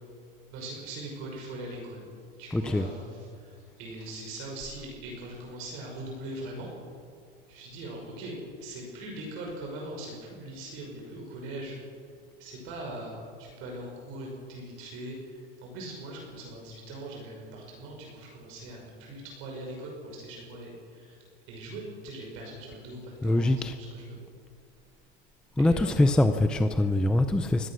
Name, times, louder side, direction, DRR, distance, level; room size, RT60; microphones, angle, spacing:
voice 1, 0.5-2.0 2.4-6.7 7.5-8.3 8.6-11.8 12.4-13.1 13.4-15.2 15.6-21.2 21.5-24.2 25.6-26.1, right 1 dB, 45° right, 0 dB, 6.0 m, -41 dB
voice 2, 2.5-2.9 23.2-23.8 25.6-27.7, left 1 dB, 5° left, 8 dB, 0.5 m, -23 dB
24.0 x 17.5 x 6.4 m, 2.2 s
supercardioid pair, 155°, 29 cm